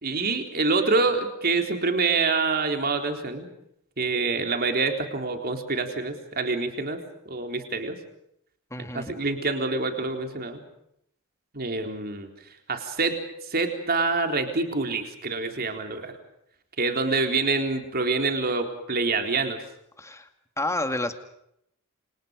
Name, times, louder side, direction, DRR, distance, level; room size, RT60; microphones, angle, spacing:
voice 1, 0.0-3.5 4.0-7.0 7.3-8.0 8.9-10.6 11.5-12.3 12.7-13.2 13.5-16.1 16.8-19.6, right 3 dB, 45° right, 5 dB, 3.9 m, -26 dB
voice 2, 8.7-9.2 20.0-20.3 20.6-21.2, left 2 dB, 15° left, 8 dB, 2.3 m, -29 dB
29.0 x 27.0 x 5.2 m, 0.74 s
head